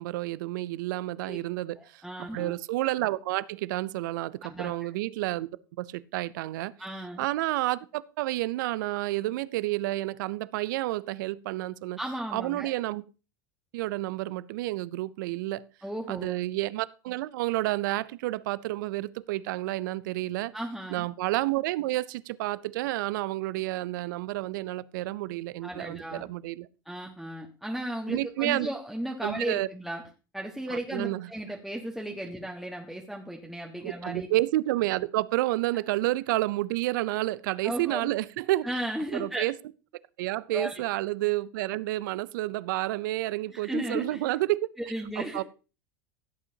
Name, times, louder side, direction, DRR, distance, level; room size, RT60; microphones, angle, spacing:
voice 1, 0.0-5.5 5.8-6.7 7.2-12.0 12.3-13.0 13.7-15.6 16.1-20.5 20.9-26.7 28.1-28.7 29.2-29.7 30.7-31.3 33.8-38.8 39.1-39.5 40.2-44.7 45.2-45.4, right 17 dB, 70° right, 0.5 m, -30 dB
voice 2, 1.7-2.5 4.4-4.7 6.8-7.2 12.0-12.7 15.8-16.4 20.5-21.0 25.6-26.3 26.8-30.0 30.3-34.3 37.6-38.1 38.6-39.4 40.5-40.8 43.5-44.2 44.8-45.4, right 1 dB, ahead, 1.4 m, -35 dB
16.0 x 8.2 x 2.8 m
hypercardioid pair, 85°, 11 cm